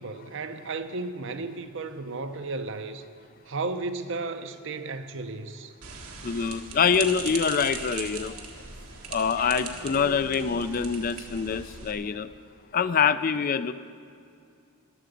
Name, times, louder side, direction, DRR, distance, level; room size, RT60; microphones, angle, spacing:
voice 1, 0.0-3.0 3.5-5.7, right 3 dB, 55° right, 0.8 m, -34 dB
sound 1, 5.8-11.9, right 5 dB, 80° right, 1.6 m, -40 dB
voice 2, 6.2-8.3 9.1-12.3 12.7-13.7, left 6 dB, 40° left, 0.4 m, -25 dB
Dog, 6.5-11.9, left 1 dB, 80° left, 2.8 m, -46 dB
15.0 x 11.5 x 5.2 m
head